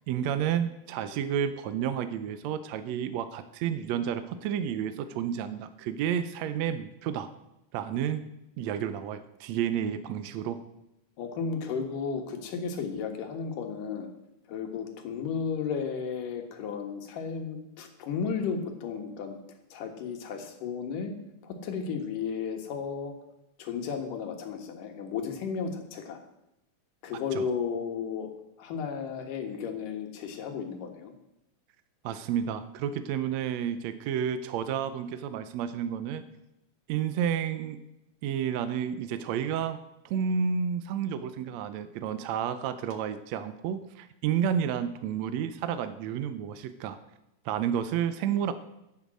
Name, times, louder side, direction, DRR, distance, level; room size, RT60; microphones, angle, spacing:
voice 1, 0.0-7.3 7.7-8.3 8.6-10.6 27.4-27.5 32.0-36.2 36.9-37.8 38.2-39.8 40.1-47.0 47.5-48.5, right 8 dB, 75° right, 11 dB, 1.8 m, -31 dB
voice 2, 11.2-14.1 14.5-19.4 19.7-21.1 21.4-23.1 23.6-26.2 27.0-28.3 28.6-31.1, left 6 dB, 85° left, 4 dB, 3.2 m, -34 dB
10.5 x 9.0 x 7.5 m, 0.85 s
omnidirectional pair, 3.7 m